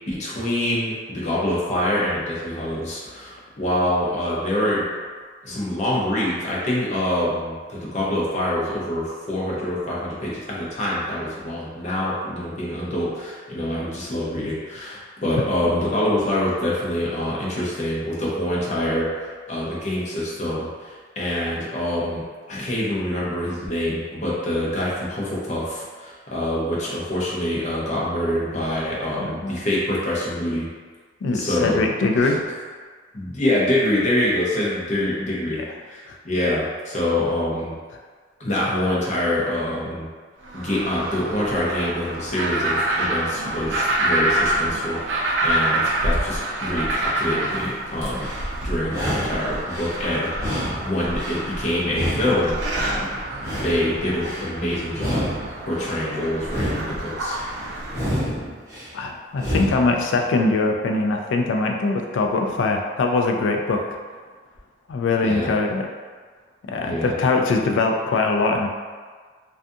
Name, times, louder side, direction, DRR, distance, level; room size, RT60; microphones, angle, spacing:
voice 1, 0.1-4.8 5.4-30.7 31.3-31.8 32.2-32.3 33.1-37.8 38.4-40.1 40.5-48.3 48.6-53.1 53.6-55.3 55.7-57.4 65.2-65.5 66.8-67.1, left 1 dB, 40° left, -6 dB, 0.6 m, -25 dB
voice 2, 29.2-29.6 31.2-32.4 36.1-36.2 58.9-63.8 64.9-65.9 66.7-68.7, left 3 dB, 90° left, 2 dB, 0.3 m, -22 dB
sound 1, 40.4-58.2, right 1 dB, 80° right, 0.5 m, -27 dB
sound 2, 48.0-48.5 48.8-50.0 50.3-51.5 51.8-53.0 53.3-54.5 54.9-56.0 56.4-57.5 57.9-58.9 59.3-60.0, equal, 15° right, 0.7 m, -29 dB
2.4 x 2.3 x 2.6 m, 1.5 s
head